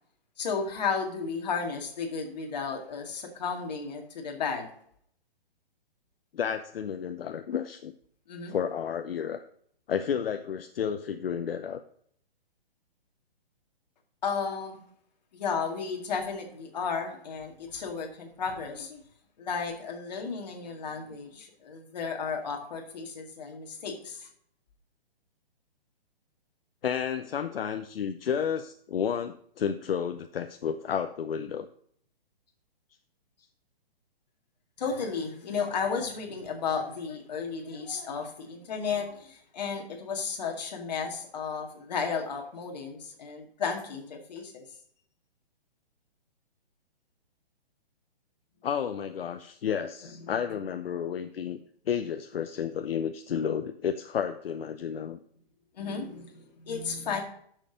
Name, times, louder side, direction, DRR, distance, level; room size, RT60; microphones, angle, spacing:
voice 1, 0.4-4.7 8.3-8.6 14.2-14.8 15.3-19.0 19.4-24.3 34.8-44.6 50.2-50.3 55.8-57.2, left 5 dB, 45° left, 2 dB, 2.0 m, -33 dB
voice 2, 6.3-7.9 8.5-9.4 9.9-11.8 26.8-31.7 48.6-51.6 51.9-55.2, left 8 dB, 70° left, 8 dB, 0.7 m, -31 dB
9.0 x 6.6 x 5.0 m, 0.63 s
hypercardioid pair, 170°, 30 cm